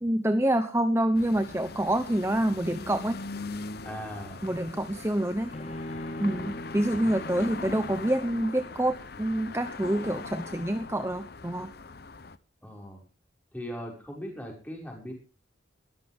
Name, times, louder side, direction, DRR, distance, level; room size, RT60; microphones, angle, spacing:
voice 1, 0.0-3.2 4.4-5.5 6.2-11.7, right 1 dB, 15° right, 9 dB, 0.9 m, -27 dB
sound 1, 1.1-12.4, left 3 dB, 50° left, 0.8 m, -41 dB
voice 2, 3.8-4.4 12.6-13.0 13.5-15.1, equal, 10° left, 0 dB, 5.9 m, -39 dB
Bowed string instrument, 5.5-8.8, left 1 dB, 35° left, 1.6 m, -40 dB
21.0 x 13.5 x 3.6 m, 0.35 s
head